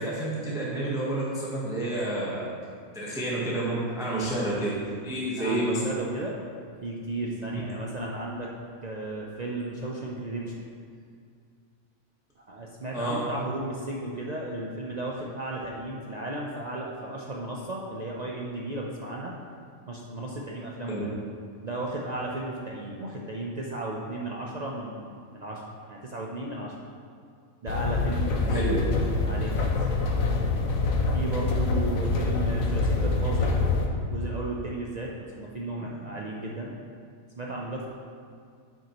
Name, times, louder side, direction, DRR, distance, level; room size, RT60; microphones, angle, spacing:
voice 1, 0.0-2.5 2.9-4.7 5.0-5.8 12.9-13.2 20.9-21.0 28.5-28.8, right 1 dB, 5° right, -6 dB, 0.9 m, -29 dB
voice 2, 5.4-6.4 6.8-8.5 8.8-10.6 12.4-19.3 19.9-21.1 21.6-25.6 25.9-26.7 27.6-28.7 29.1-29.8 31.1-33.5 34.0-36.8 37.4-37.9, right 2 dB, 70° right, -2 dB, 0.4 m, -34 dB
sound 1, 27.7-33.9, left 3 dB, 65° left, 1.1 m, -25 dB
8.9 x 6.2 x 3.0 m, 2.2 s
omnidirectional pair, 1.6 m